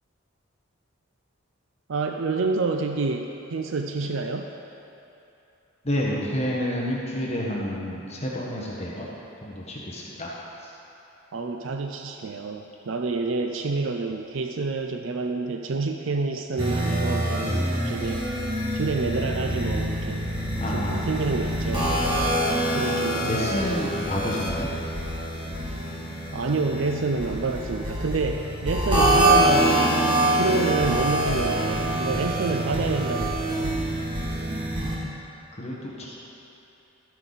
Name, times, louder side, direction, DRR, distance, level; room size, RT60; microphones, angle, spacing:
voice 1, 1.9-4.5 11.3-18.3 18.7-20.2 20.7-22.3 22.7-23.9 25.5-25.6 26.3-33.8, right 3 dB, 65° right, 4 dB, 0.5 m, -28 dB
voice 2, 5.8-9.1 9.4-10.3 10.6-10.7 20.6-21.0 23.2-24.7 35.5-36.2, equal, 30° left, -4 dB, 1.3 m, -29 dB
sound 1, 16.6-35.0, right 1 dB, 25° right, 2.0 m, -25 dB
13.0 x 9.1 x 4.0 m, 3.0 s
head